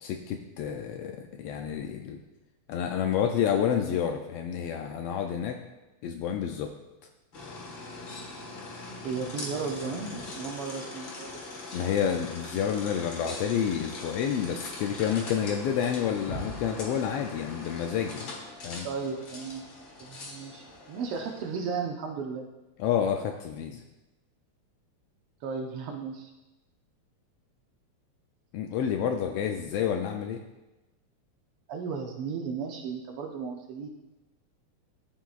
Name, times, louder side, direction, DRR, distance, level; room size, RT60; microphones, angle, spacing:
voice 1, 0.0-2.2 2.7-5.6 6.0-6.7 11.7-18.3 18.6-18.9 22.8-23.8 28.5-30.4, left 8 dB, 90° left, 4 dB, 1.3 m, -29 dB
sound 1, 7.3-21.7, left 2 dB, 50° left, 1.9 m, -41 dB
voice 2, 9.0-11.5 18.8-19.6 20.0-22.5 25.4-26.3 31.7-33.9, right 5 dB, 75° right, 2 dB, 1.3 m, -35 dB
13.0 x 5.8 x 2.4 m, 1.0 s
omnidirectional pair, 3.3 m